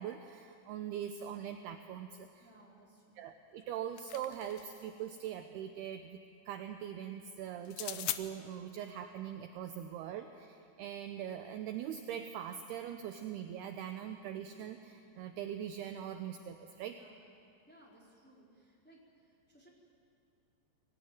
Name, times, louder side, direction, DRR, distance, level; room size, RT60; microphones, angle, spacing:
voice 1, 0.0-2.5 3.2-6.2 6.5-17.0, right 9 dB, 75° right, 7 dB, 2.5 m, -42 dB
voice 2, 2.4-3.2 16.9-17.3 17.7-19.7, right 1 dB, ahead, -5 dB, 3.8 m, -62 dB
sound 1, 3.6-4.9 7.6-8.2, left 14 dB, 75° left, 2.4 m, -40 dB
24.5 x 18.0 x 9.5 m, 2.5 s
omnidirectional pair, 5.2 m